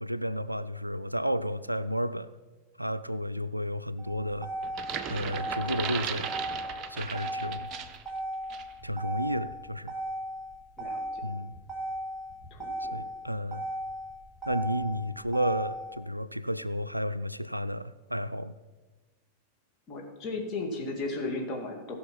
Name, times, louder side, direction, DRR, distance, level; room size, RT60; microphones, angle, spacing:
voice 1, 0.0-2.3 2.8-4.5 5.1-6.3 6.9-7.7 8.8-9.9 11.2-11.5 12.8-13.7 14.5-18.6, equal, 90° right, 15 dB, 0.3 m, -32 dB
Motor vehicle (road), 4.0-16.0, right 1 dB, ahead, 3.3 m, -37 dB
sound 1, 4.6-8.1 8.5-8.7, right 7 dB, 35° right, 0.8 m, -37 dB
voice 2, 12.5-12.9 19.9-22.0, left 2 dB, 35° left, 0 dB, 2.7 m, -35 dB
15.5 x 5.9 x 5.8 m, 1.3 s
figure-of-eight pair, 90°, 0 cm